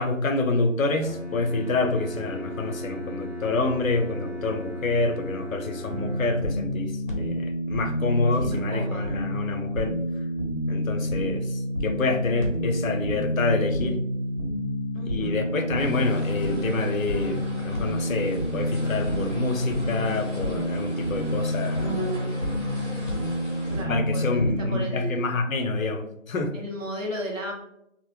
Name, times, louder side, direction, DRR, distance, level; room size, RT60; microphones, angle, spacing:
voice 1, 0.0-10.0 10.7-14.0 15.1-22.0 23.9-26.6, left 3 dB, 90° left, 6 dB, 0.5 m, -27 dB
Bowed string instrument, 1.0-6.8, equal, 35° right, 0.6 m, -36 dB
sound 1, 5.9-24.8, equal, 40° left, 0.5 m, -28 dB
voice 2, 8.4-9.2 14.9-15.5 23.7-25.3 26.5-27.5, right 1 dB, 70° right, 0 dB, 0.9 m, -35 dB
sound 2, 15.8-23.8, equal, 15° right, 1.0 m, -38 dB
2.1 x 2.0 x 3.0 m, 0.79 s
figure-of-eight pair, 170°, 40 cm